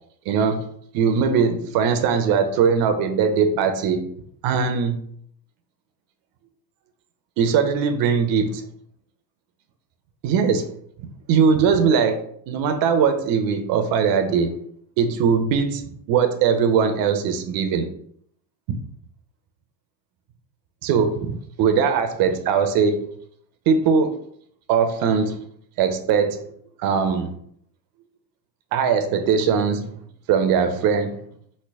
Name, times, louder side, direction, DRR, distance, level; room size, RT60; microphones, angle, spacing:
voice 1, 0.3-0.6 0.9-4.1 4.4-5.0 7.4-8.6 10.2-10.7 11.3-14.6 15.0-17.9 18.7-18.8 20.8-23.0 23.7-24.2 24.7-25.4 25.8-26.5 26.8-27.3 28.7-30.0 30.3-31.2, right 6 dB, 45° right, 0.6 m, -20 dB
3.2 x 2.1 x 3.5 m
hypercardioid pair, 85°, 49 cm